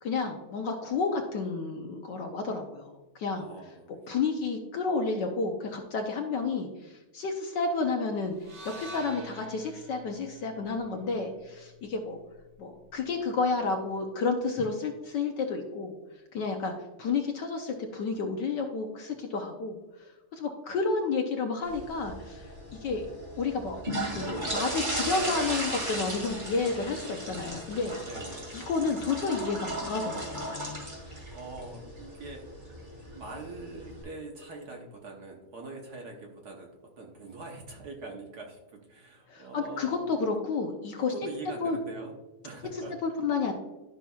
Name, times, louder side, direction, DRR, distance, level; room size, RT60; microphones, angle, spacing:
voice 1, 0.0-3.4 4.1-8.4 8.8-12.2 12.6-16.0 16.3-16.7 17.0-22.5 22.8-23.1 23.4-23.8 24.1-28.0 28.5-30.9 39.3-41.1 41.6-41.8 43.0-43.5, left 4 dB, 65° left, 3 dB, 1.2 m, -31 dB
voice 2, 3.3-4.0 28.0-28.7 30.1-30.2 31.3-32.7 33.1-36.7 37.0-40.0 41.1-42.1 42.4-43.0, right 3 dB, 55° right, 1 dB, 1.3 m, -43 dB
sound 1, 8.4-12.6, equal, 90° right, 2.5 m, -48 dB
sound 2, 21.6-34.0, right 1 dB, 20° right, 2.2 m, -36 dB
12.0 x 5.9 x 2.3 m, 1.1 s
omnidirectional pair, 2.4 m